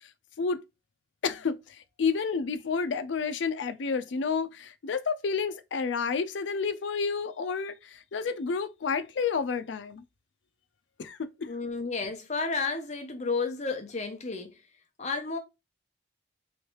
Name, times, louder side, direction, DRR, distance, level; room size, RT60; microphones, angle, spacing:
voice 1, 1.2-10.0 11.0-11.5, left 5 dB, 90° left, 0.5 m, -30 dB
voice 2, 11.4-14.6 15.0-15.4, left 4 dB, 40° left, 0.7 m, -32 dB
3.2 x 3.1 x 2.9 m
head